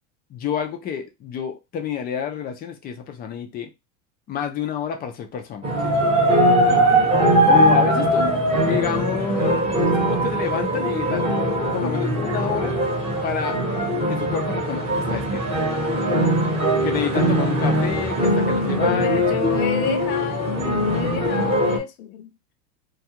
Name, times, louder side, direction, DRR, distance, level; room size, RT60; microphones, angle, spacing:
voice 1, 0.3-3.7 4.3-5.9 7.5-8.3 8.7-11.3 11.7-12.7 13.2-13.6 14.1-15.5 16.8-19.4, left 8 dB, 25° left, 0.4 m, -29 dB
sound 1, 5.6-21.8, right 1 dB, 15° right, 0.9 m, -21 dB
voice 2, 6.7-7.2 9.1-9.3 18.8-22.3, left 10 dB, 85° left, 0.6 m, -30 dB
2.3 x 2.3 x 2.8 m
supercardioid pair, 135°, 41 cm